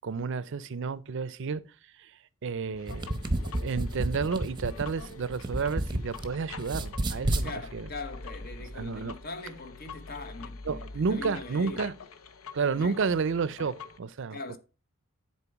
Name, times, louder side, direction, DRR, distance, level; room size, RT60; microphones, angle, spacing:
voice 1, 0.0-1.6 1.9-3.1 3.6-7.9 8.7-9.2 10.7-11.9 12.5-14.6, right 5 dB, 60° right, 0.5 m, -31 dB
sound 1, 2.7-6.3 6.6-7.5, right 1 dB, 20° right, 0.7 m, -30 dB
sound 2, 2.8-14.0, left 4 dB, 80° left, 0.7 m, -45 dB
voice 2, 7.3-10.8 11.1-11.8 12.7-13.0 14.3-14.6, left 3 dB, 45° left, 1.0 m, -41 dB
10.0 x 4.5 x 4.6 m
head